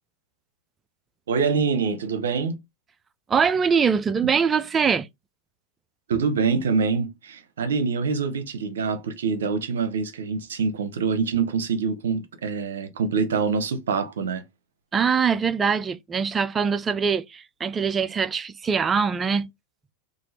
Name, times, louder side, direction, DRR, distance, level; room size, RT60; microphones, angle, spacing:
voice 1, 1.3-2.6 6.1-14.4, right 5 dB, 80° right, 0.7 m, -25 dB
voice 2, 3.3-5.1 14.9-19.5, right 6 dB, 25° right, 0.3 m, -23 dB
2.7 x 2.5 x 3.2 m
hypercardioid pair, 100°, 0 cm